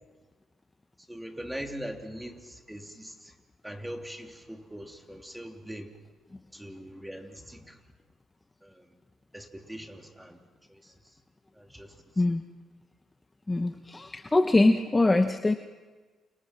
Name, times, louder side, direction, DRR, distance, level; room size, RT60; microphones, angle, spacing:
voice 1, 1.1-3.3 3.6-5.9 6.5-7.8 8.6-8.9 9.3-10.4 10.7-10.9 11.5-12.0, equal, 5° right, 4 dB, 3.2 m, -41 dB
voice 2, 13.5-15.5, left 2 dB, 20° left, 7 dB, 1.1 m, -23 dB
29.5 x 29.0 x 6.1 m, 1.3 s
cardioid pair, 90°, 0 cm